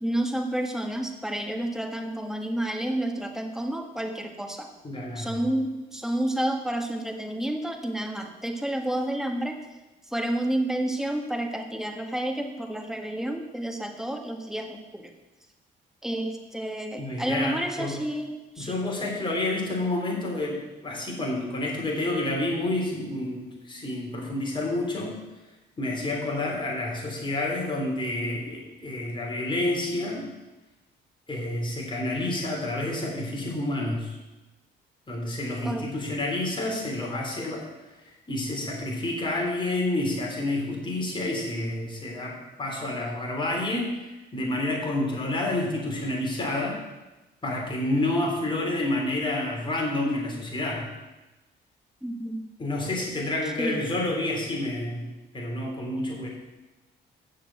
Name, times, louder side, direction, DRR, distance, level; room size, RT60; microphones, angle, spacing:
voice 1, 0.0-4.7 5.1-9.6 10.1-15.1 16.0-18.8 35.6-35.8 52.0-52.5 53.6-53.8, right 1 dB, ahead, 3 dB, 1.5 m, -30 dB
voice 2, 4.8-5.4 17.0-17.9 18.6-25.2 25.8-30.3 31.3-34.2 35.1-37.7 38.0-46.8 47.4-50.9 52.6-55.1 55.3-56.3, left 2 dB, 25° left, -1 dB, 3.4 m, -29 dB
7.4 x 7.0 x 8.2 m, 1.1 s
cardioid pair, 90°, 20 cm